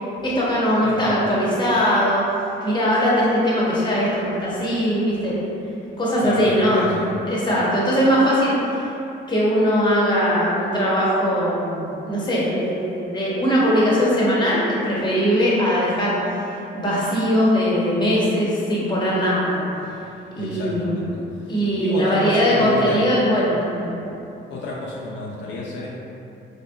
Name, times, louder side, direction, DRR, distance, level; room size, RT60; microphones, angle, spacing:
voice 1, 0.2-2.2 2.6-5.3 6.0-8.8 9.3-16.4 16.7-19.6 20.4-21.1 21.5-24.0, equal, 20° left, -7 dB, 0.9 m, -20 dB
voice 2, 6.2-7.2 20.4-21.5 21.8-23.1 24.5-25.9, left 2 dB, 65° left, -4 dB, 0.4 m, -29 dB
3.5 x 2.7 x 2.3 m, 2.7 s
cardioid pair, 90°, 20 cm